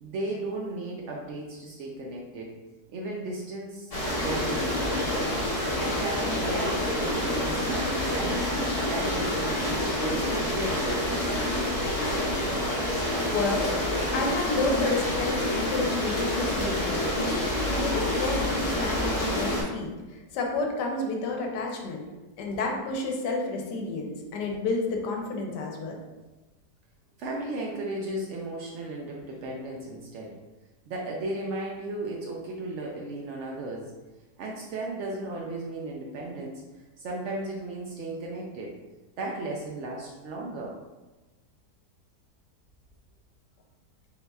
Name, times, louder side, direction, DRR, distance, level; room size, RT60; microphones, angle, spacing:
voice 1, 0.0-2.5 2.9-5.4 5.8-8.5 8.9-11.2 22.5-22.6 27.2-30.4 30.9-33.9 34.4-36.6 37.0-38.7 39.2-40.7, right 2 dB, 80° right, -2 dB, 0.6 m, -35 dB
sound 1, 3.9-19.6, left 1 dB, 35° left, 0.5 m, -28 dB
voice 2, 13.3-13.7 14.1-17.2 17.7-22.0 22.4-26.0, left 3 dB, 90° left, 1 dB, 1.3 m, -30 dB
4.0 x 2.3 x 4.1 m, 1.1 s
omnidirectional pair, 1.8 m